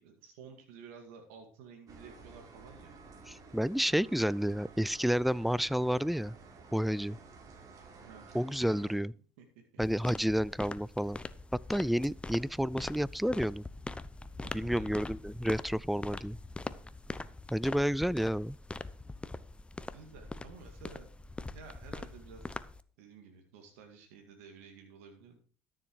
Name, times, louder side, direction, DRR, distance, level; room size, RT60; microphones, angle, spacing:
voice 1, 0.0-2.9 8.0-8.7 9.4-9.5 14.4-15.0 19.9-21.1 21.5-22.5 23.0-25.4, right 5 dB, 90° right, 2.1 m, -52 dB
sound 1, 1.9-9.0, right 4 dB, 55° right, 3.6 m, -53 dB
voice 2, 3.3-6.3 6.7-7.2 8.3-9.1 9.8-11.2 11.7-13.6 14.5-16.4 17.5-18.6, equal, ahead, 0.5 m, -30 dB
sound 2, 9.8-22.8, left 2 dB, 15° left, 1.0 m, -43 dB
13.0 x 7.3 x 4.7 m
supercardioid pair, 70°, 7 cm